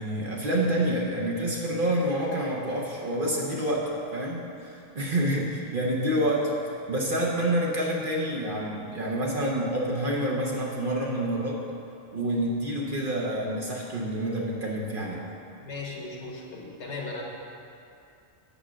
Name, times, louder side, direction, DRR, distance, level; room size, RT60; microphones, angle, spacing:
voice 1, 0.0-6.5 6.9-11.6 12.1-15.2, right 1 dB, 50° right, -3 dB, 1.0 m, -28 dB
voice 2, 15.6-17.2, left 3 dB, 75° left, -1 dB, 1.5 m, -37 dB
6.8 x 6.1 x 6.2 m, 2.5 s
omnidirectional pair, 1.2 m